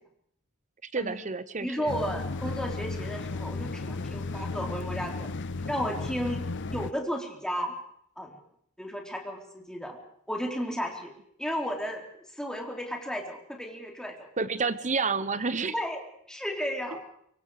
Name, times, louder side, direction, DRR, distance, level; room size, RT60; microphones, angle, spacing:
voice 1, 0.9-1.9 14.4-15.7, right 4 dB, 35° right, 14 dB, 1.0 m, -29 dB
voice 2, 1.6-5.3 5.7-7.7 8.2-8.4 8.8-10.0 10.3-11.1 11.4-14.3 15.6-16.0 16.3-17.0, equal, 5° left, 1 dB, 3.8 m, -34 dB
sound 1, 1.9-6.9, left 3 dB, 55° left, 0.8 m, -34 dB
25.0 x 23.0 x 5.0 m, 0.69 s
head